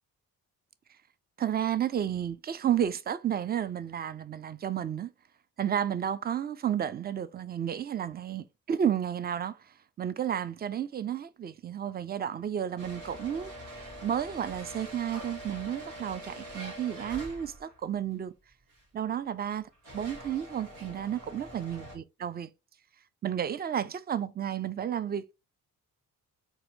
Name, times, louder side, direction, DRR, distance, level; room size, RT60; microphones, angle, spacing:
voice 1, 1.4-5.1 5.6-9.6 10.0-13.5 14.0-18.3 18.9-22.5 23.2-25.3, right 9 dB, 25° right, 0.4 m, -32 dB
sound 1, 12.8-17.8 18.7-18.8 19.5-22.0, right 1 dB, 85° right, 1.3 m, -44 dB
4.1 x 2.3 x 2.6 m
hypercardioid pair, 40°, 43 cm